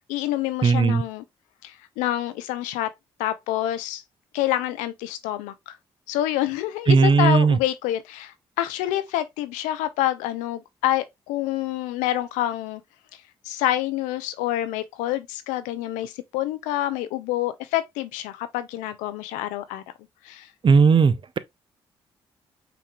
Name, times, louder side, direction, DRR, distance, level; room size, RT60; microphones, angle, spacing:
voice 1, 0.1-1.2 1.6-2.9 3.2-4.0 4.3-5.7 6.1-12.8 13.5-19.8 20.2-20.5, left 13 dB, 85° left, 0.5 m, -27 dB
voice 2, 0.6-1.0 6.9-7.6 20.6-21.4, right 5 dB, 40° right, 0.6 m, -17 dB
5.8 x 3.6 x 2.3 m
hypercardioid pair, 50°, 13 cm